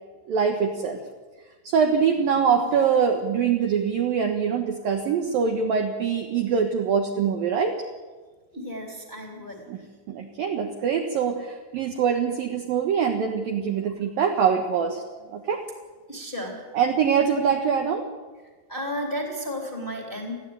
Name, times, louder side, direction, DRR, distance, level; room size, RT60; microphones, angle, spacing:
voice 1, 0.3-1.0 1.6-7.8 9.7-9.8 10.1-15.0 15.3-15.6 16.7-18.1, right 6 dB, 65° right, 3 dB, 2.5 m, -23 dB
voice 2, 8.5-9.6 16.1-16.7 18.7-20.4, equal, 15° left, 2 dB, 2.6 m, -33 dB
20.0 x 15.0 x 9.6 m, 1.3 s
omnidirectional pair, 5.6 m